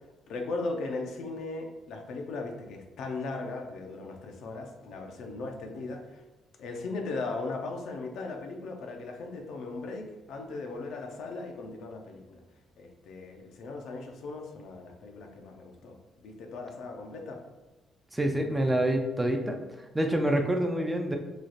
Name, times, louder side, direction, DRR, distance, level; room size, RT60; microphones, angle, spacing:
voice 1, 0.3-6.2 6.6-12.4 12.8-17.4, left 3 dB, 70° left, 3 dB, 0.5 m, -38 dB
voice 2, 18.1-19.6 19.9-21.2, right 1 dB, 10° right, 3 dB, 0.3 m, -26 dB
3.1 x 2.4 x 3.9 m, 1.1 s
cardioid pair, 145°, 0 cm